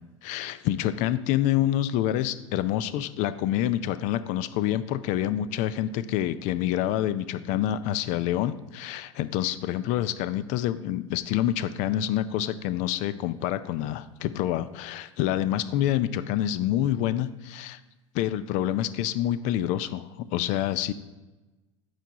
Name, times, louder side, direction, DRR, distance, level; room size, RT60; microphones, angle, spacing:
voice 1, 0.2-17.8 18.1-20.0 20.3-20.9, left 12 dB, 45° left, 13 dB, 0.5 m, -27 dB
9.1 x 4.7 x 4.1 m, 1.1 s
figure-of-eight pair, 80°, 17 cm